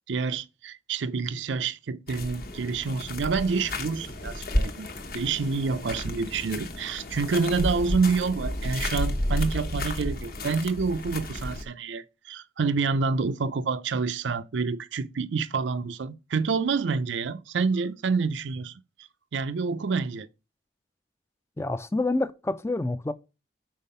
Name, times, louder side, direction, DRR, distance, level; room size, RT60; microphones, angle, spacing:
voice 1, 0.1-4.9 5.1-18.7 19.3-20.3, right 4 dB, 75° right, 0.5 m, -28 dB
sound 1, 2.1-11.6, left 1 dB, 50° left, 1.1 m, -32 dB
voice 2, 21.6-23.1, left 2 dB, 15° left, 0.4 m, -27 dB
5.6 x 4.5 x 5.4 m
head